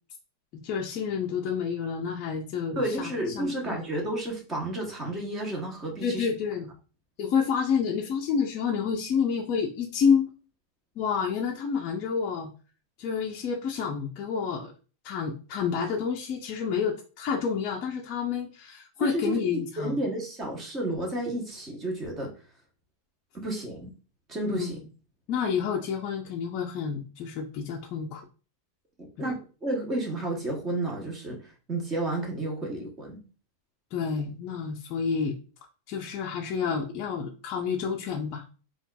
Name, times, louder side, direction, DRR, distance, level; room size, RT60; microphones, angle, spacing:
voice 1, 0.5-3.8 6.0-6.7 7.2-10.3 11.0-12.5 13.0-14.7 15.0-20.0 24.5-24.7 25.3-28.3 33.9-35.4 35.9-38.4, left 6 dB, 35° left, 0 dB, 0.4 m, -29 dB
voice 2, 2.8-6.3 19.0-22.3 23.3-23.9 24.3-24.8 29.0-31.4 31.7-33.2, right 1 dB, 15° right, 0 dB, 0.8 m, -31 dB
4.2 x 2.2 x 2.2 m, 0.36 s
supercardioid pair, 165°, 0 cm